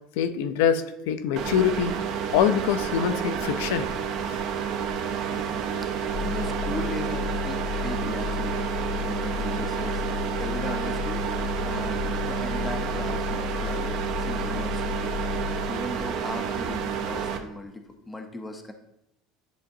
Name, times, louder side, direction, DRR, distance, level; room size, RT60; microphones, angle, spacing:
voice 1, 0.2-2.0 2.3-3.9 4.3-4.4 13.7-13.8, left 8 dB, 70° left, 9 dB, 0.4 m, -24 dB
sound 1, 1.4-17.4, right 7 dB, 45° right, 0.6 m, -30 dB
voice 2, 5.2-5.6 6.2-10.0 10.4-11.3 11.6-13.9 14.2-15.3 15.7-18.7, left 1 dB, 5° left, 5 dB, 0.5 m, -37 dB
sound 2, 6.1-15.7, left 10 dB, 75° right, 0.9 m, -34 dB
10.0 x 3.8 x 2.6 m, 0.82 s
cardioid pair, 175°, 0 cm